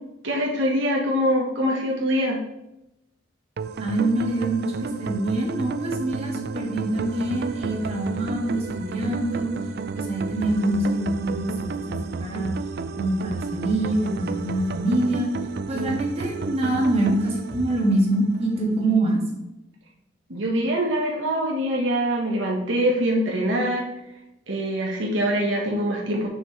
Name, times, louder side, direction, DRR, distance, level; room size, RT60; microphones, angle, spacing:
voice 1, 0.2-2.4 15.7-15.9 20.3-23.9 24.5-26.3, equal, 75° right, -2 dB, 1.3 m, -24 dB
sound 1, 3.6-18.6, right 4 dB, 55° right, 0.4 m, -32 dB
voice 2, 3.8-9.5 9.9-12.5 13.0-15.3 15.7-19.2, right 1 dB, 30° right, -3 dB, 2.0 m, -25 dB
7.1 x 6.5 x 3.2 m, 0.89 s
head